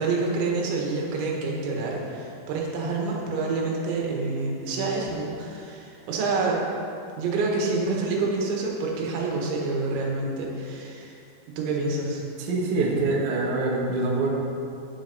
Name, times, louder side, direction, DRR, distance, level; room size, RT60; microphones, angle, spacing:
voice 1, 0.0-6.6 7.2-11.2 11.5-12.2, right 3 dB, 80° right, -2 dB, 3.8 m, -27 dB
voice 2, 12.4-14.3, right 3 dB, 65° right, -2 dB, 2.0 m, -25 dB
16.5 x 6.5 x 4.0 m, 2.6 s
omnidirectional pair, 5.2 m